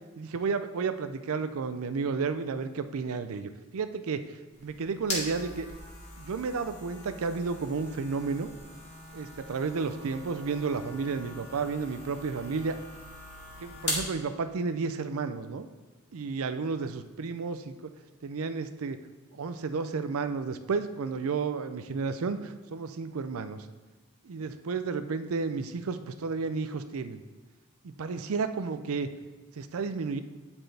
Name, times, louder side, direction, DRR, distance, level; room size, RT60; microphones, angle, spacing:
voice 1, 0.2-5.7 6.2-8.5 9.1-12.8 13.6-15.7 16.1-17.9 18.2-19.0 19.3-23.7 24.2-27.2 27.8-29.1 29.5-30.2, right 4 dB, 65° right, 11 dB, 0.5 m, -32 dB
sound 1, 4.5-14.1, left 2 dB, 30° left, 2.0 m, -40 dB
11.5 x 4.4 x 3.4 m, 1.3 s
head